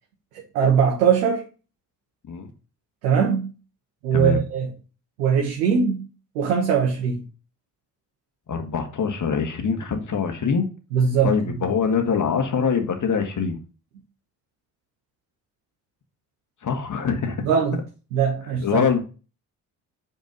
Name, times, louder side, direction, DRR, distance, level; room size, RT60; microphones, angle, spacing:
voice 1, 0.5-1.4 3.0-3.5 4.0-4.7 5.2-6.0 6.3-7.2 10.9-11.6 17.4-17.8 18.1-18.8, right 7 dB, 80° right, 1.5 m, -21 dB
voice 2, 4.1-4.4 8.5-10.7 11.2-13.6 16.6-17.5 18.6-19.0, left 6 dB, 40° left, 1.8 m, -24 dB
5.3 x 4.7 x 5.3 m
hypercardioid pair, 50°, 45 cm